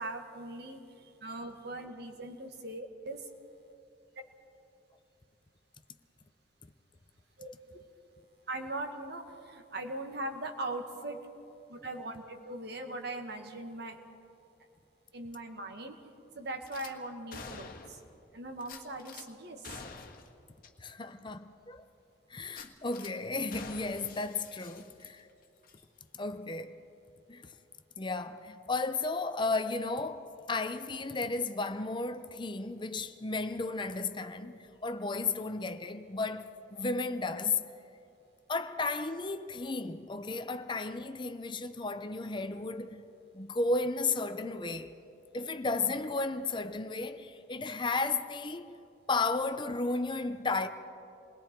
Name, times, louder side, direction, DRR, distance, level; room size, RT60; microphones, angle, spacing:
voice 1, 0.0-3.3 7.4-7.5 8.5-11.2 11.7-14.0 15.1-16.0 16.4-18.0 18.3-19.8, right 2 dB, 60° right, 1.9 m, -40 dB
Gunshot gunfire / Glass, 16.7-16.9 17.3-18.1 18.6-19.3 19.6-20.3 20.6-20.7 21.2-21.3 22.5-23.1 23.5-25.3 25.6-25.8, left 4 dB, 50° left, 1.6 m, -47 dB
voice 2, 20.8-21.8 22.3-25.3 26.1-26.9 27.3-27.5 28.0-37.7 38.5-43.0 43.3-45.0 45.3-48.7 49.1-50.7, left 3 dB, 25° left, 0.7 m, -34 dB
28.5 x 21.0 x 4.5 m
head